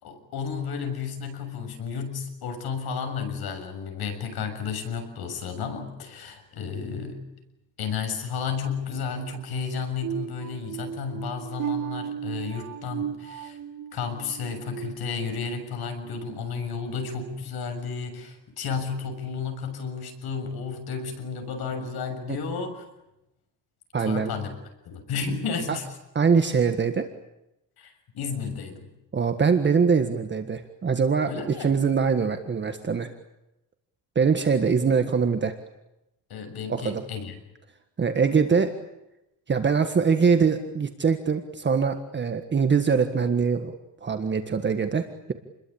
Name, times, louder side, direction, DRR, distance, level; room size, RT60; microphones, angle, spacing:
voice 1, 0.0-7.2 7.8-13.6 13.9-22.8 24.0-24.5 24.9-25.9 27.8-28.9 31.2-31.7 36.3-37.4, left 5 dB, 60° left, 6 dB, 7.0 m, -32 dB
sound 1, 10.0-15.7 16.1-16.4 16.9-17.1, right 9 dB, 50° right, 4.4 m, -35 dB
voice 2, 23.9-24.3 25.7-25.8 26.1-27.1 29.1-33.1 34.1-35.5 36.7-37.0 38.0-38.7 39.5-43.8 44.0-45.3, right 5 dB, 25° right, 7 dB, 1.6 m, -23 dB
29.5 x 22.0 x 8.7 m, 0.90 s
cardioid pair, 160°, 42 cm